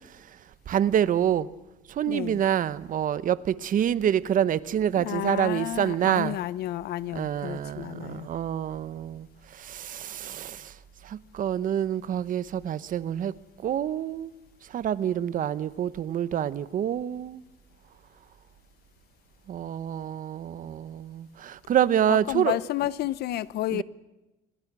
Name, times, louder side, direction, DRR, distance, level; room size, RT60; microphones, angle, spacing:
voice 1, 0.7-1.5 1.9-6.4 7.1-10.7 11.0-13.3 13.6-14.3 14.7-17.4 19.5-22.6 23.7-23.8, right 10 dB, 55° right, 1.0 m, -27 dB
voice 2, 2.0-2.4 5.0-8.3 22.1-23.8, left 14 dB, 70° left, 0.8 m, -31 dB
28.0 x 23.0 x 6.1 m
cardioid pair, 110°, 17 cm